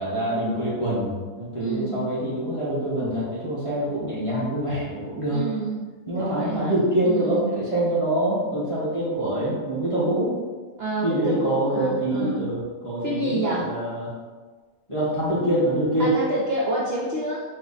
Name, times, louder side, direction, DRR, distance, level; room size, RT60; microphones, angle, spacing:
voice 1, 0.0-5.4 6.1-10.3 11.0-14.1 14.9-16.1, right 1 dB, 20° left, -9 dB, 1.2 m, -25 dB
voice 2, 1.6-2.1 5.3-5.8 6.2-7.5 10.8-12.4 13.0-13.7 16.0-17.4, right 1 dB, 60° right, -5 dB, 0.7 m, -28 dB
4.4 x 2.4 x 4.0 m, 1.4 s
omnidirectional pair, 1.6 m